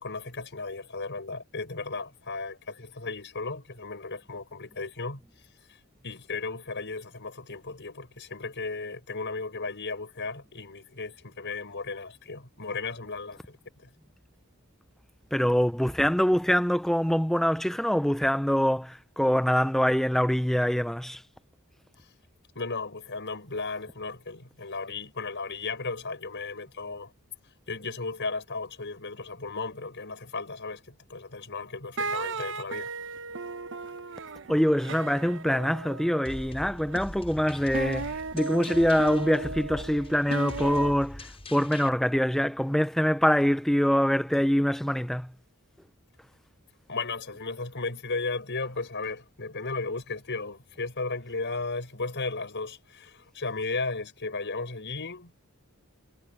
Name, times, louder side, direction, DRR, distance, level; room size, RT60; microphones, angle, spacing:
voice 1, 0.0-5.2 5.7-13.9 22.6-27.1 27.7-32.9 46.9-55.4, left 3 dB, 55° left, 5.7 m, -35 dB
voice 2, 15.3-21.2 34.5-45.3, equal, ahead, 0.5 m, -24 dB
sound 1, 32.0-37.0 37.7-41.0, right 3 dB, 55° right, 1.0 m, -36 dB
sound 2, 36.2-41.9, left 1 dB, 25° left, 7.1 m, -42 dB
head